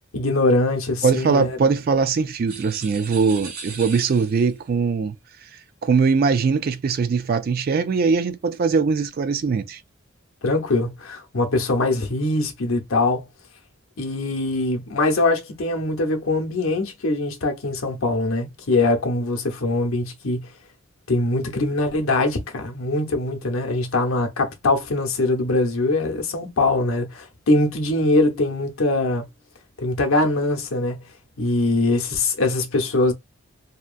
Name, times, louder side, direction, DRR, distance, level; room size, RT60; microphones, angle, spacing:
voice 1, 0.1-1.5 10.4-13.2 14.0-20.5 21.1-29.2 29.8-31.0 31.4-33.1, left 2 dB, 75° left, 0.7 m, -22 dB
voice 2, 1.0-5.1 5.8-9.8, right 5 dB, 45° right, 0.3 m, -21 dB
sound 1, 2.5-4.6, right 5 dB, 85° right, 1.2 m, -38 dB
2.8 x 2.3 x 2.4 m
head